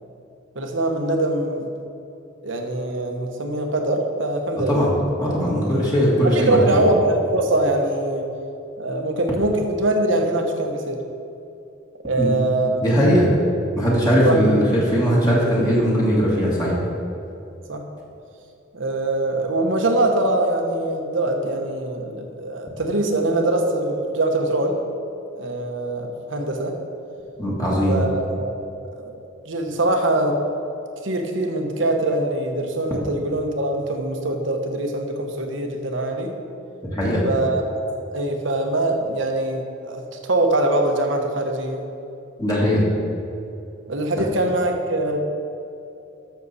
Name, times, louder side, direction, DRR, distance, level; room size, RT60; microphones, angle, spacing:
voice 1, 0.5-1.7 2.4-4.9 5.7-5.8 6.2-8.3 8.8-11.0 12.0-12.8 14.2-14.4 17.7-17.8 18.7-24.8 25.4-26.8 27.9-28.6 29.0-29.1 29.5-30.4 31.0-36.4 37.2-41.8 43.9-45.2, right 1 dB, 75° right, 3 dB, 1.1 m, -23 dB
voice 2, 4.7-6.8 12.2-12.4 12.8-13.3 13.8-16.8 27.4-28.0 36.9-37.2 42.4-42.8, equal, 20° left, -6 dB, 1.9 m, -19 dB
13.0 x 6.7 x 4.2 m, 2.7 s
head